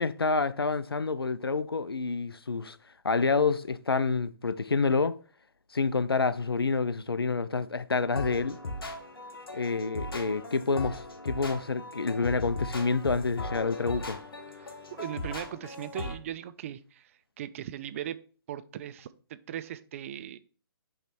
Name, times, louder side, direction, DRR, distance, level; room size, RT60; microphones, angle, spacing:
voice 1, 0.0-2.8 3.0-5.2 5.7-8.6 9.5-14.2, left 4 dB, 90° left, 0.5 m, -28 dB
sound 1, 8.1-16.1, left 2 dB, 75° left, 1.3 m, -38 dB
voice 2, 14.6-17.1 17.4-18.2 18.5-20.4, right 11 dB, 35° right, 0.4 m, -39 dB
7.8 x 3.2 x 4.3 m
figure-of-eight pair, 135°, 12 cm